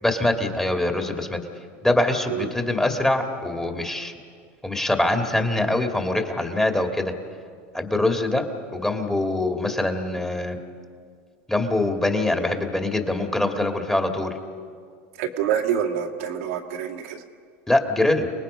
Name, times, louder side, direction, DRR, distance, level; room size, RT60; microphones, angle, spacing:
voice 1, 0.0-1.4 1.8-4.1 4.6-7.1 7.7-10.6 11.5-14.3 17.7-18.3, left 2 dB, 10° left, 4 dB, 2.2 m, -23 dB
voice 2, 15.2-17.2, right 9 dB, 80° right, 1 dB, 2.1 m, -26 dB
29.5 x 19.5 x 5.6 m, 2.1 s
supercardioid pair, 105°, 7 cm